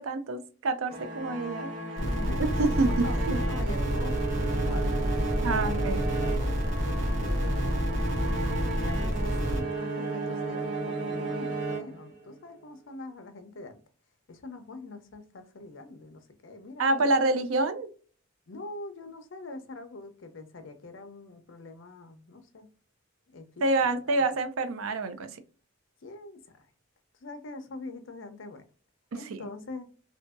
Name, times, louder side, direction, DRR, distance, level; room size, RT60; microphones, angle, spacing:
voice 1, 0.0-2.0 2.4-3.4 5.4-6.0 16.8-17.9 23.6-25.4 29.1-29.4, right 2 dB, 85° right, 0.5 m, -27 dB
sound 1, 0.9-12.4, right 2 dB, 20° right, 1.4 m, -34 dB
voice 2, 2.0-2.4 2.8-4.9 5.6-7.8 8.7-13.8 14.3-17.2 18.5-22.7 23.3-23.6 24.1-24.3 26.0-26.7 27.2-28.7 29.1-29.9, left 2 dB, 65° left, 0.6 m, -44 dB
sound 2, 2.0-9.6, equal, 65° right, 0.9 m, -29 dB
2.7 x 2.6 x 2.2 m
head